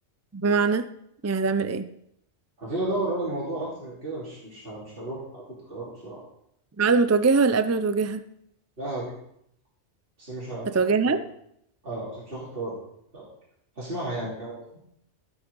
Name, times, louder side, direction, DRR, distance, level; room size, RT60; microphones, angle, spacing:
voice 1, 0.3-0.9 1.2-1.9 6.8-8.2 10.7-11.2, right 4 dB, 25° right, 10 dB, 0.3 m, -22 dB
voice 2, 2.6-6.2 8.8-9.1 10.2-11.2 11.8-12.8 13.1-13.3 13.7-14.6, right 2 dB, 50° right, -7 dB, 3.3 m, -33 dB
15.0 x 6.2 x 5.4 m, 0.74 s
omnidirectional pair, 1.2 m